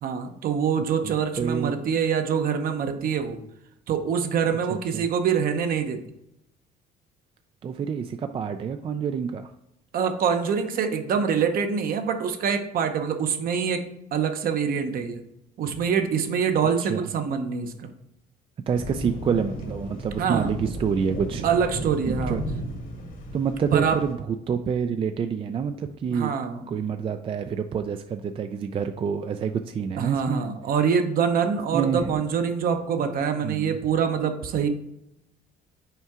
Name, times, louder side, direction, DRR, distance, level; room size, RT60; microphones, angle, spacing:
voice 1, 0.0-3.4 3.9-6.0 9.9-15.2 15.6-17.9 20.2-20.5 21.4-22.4 23.7-24.0 26.1-26.6 30.0-34.7, right 7 dB, 60° right, 7 dB, 0.9 m, -25 dB
voice 2, 1.0-1.9 4.7-5.1 7.6-9.5 16.8-17.1 18.7-21.5 22.1-22.4 23.3-26.3 26.7-30.4 31.7-32.2 33.4-33.8, right 6 dB, 35° right, 7 dB, 0.3 m, -28 dB
sound 1, 18.7-24.1, equal, 55° left, 1.4 m, -34 dB
5.6 x 4.5 x 3.7 m, 0.83 s
cardioid pair, 110°, 17 cm